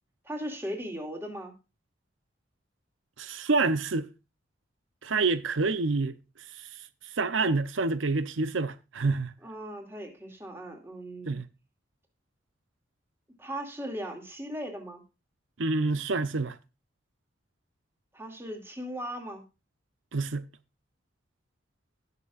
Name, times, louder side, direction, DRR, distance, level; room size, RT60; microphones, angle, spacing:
voice 1, 0.2-1.5 9.4-11.4 13.4-15.0 18.1-19.4, equal, 15° right, 2.4 m, -38 dB
voice 2, 3.2-4.1 5.0-6.2 6.5-6.7 7.2-9.3 11.3-11.4 15.6-16.6 20.1-20.5, right 3 dB, 85° right, 0.7 m, -27 dB
19.0 x 6.8 x 2.4 m
head